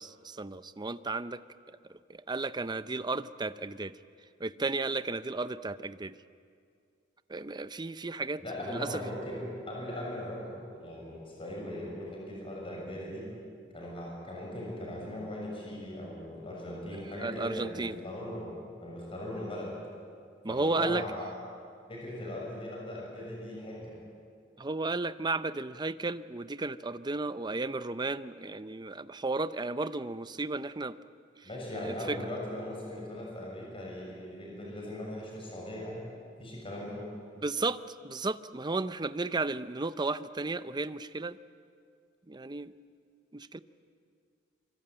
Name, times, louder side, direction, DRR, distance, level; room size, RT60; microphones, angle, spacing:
voice 1, 0.0-1.4 1.7-1.8 2.1-3.9 4.4-6.1 7.3-9.0 17.0-18.0 20.4-21.0 24.6-31.0 31.4-31.5 31.8-32.2 37.4-41.4 42.3-42.7 43.3-43.6, right 3 dB, 20° right, 13 dB, 0.6 m, -34 dB
voice 2, 8.4-9.4 9.7-13.2 13.7-18.5 18.8-19.7 20.5-21.3 21.9-23.9 31.4-36.1 36.4-37.0, left 1 dB, 30° left, -2 dB, 6.7 m, -39 dB
25.5 x 24.0 x 8.9 m, 2.2 s
head